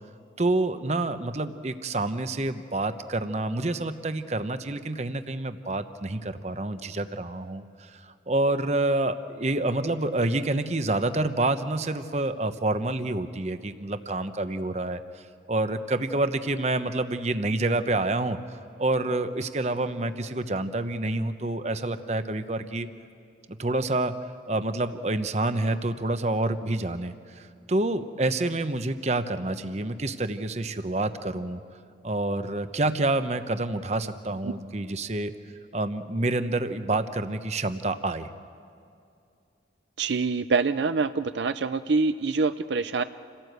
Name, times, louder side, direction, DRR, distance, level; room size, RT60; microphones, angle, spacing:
voice 1, 0.4-15.0 15.5-18.4 18.8-22.9 23.5-24.1 24.5-31.6 32.0-35.3 35.7-38.3, right 2 dB, 35° right, 10 dB, 0.9 m, -28 dB
voice 2, 40.0-43.0, right 4 dB, 75° right, 11 dB, 0.5 m, -25 dB
28.0 x 17.0 x 8.0 m, 2.5 s
head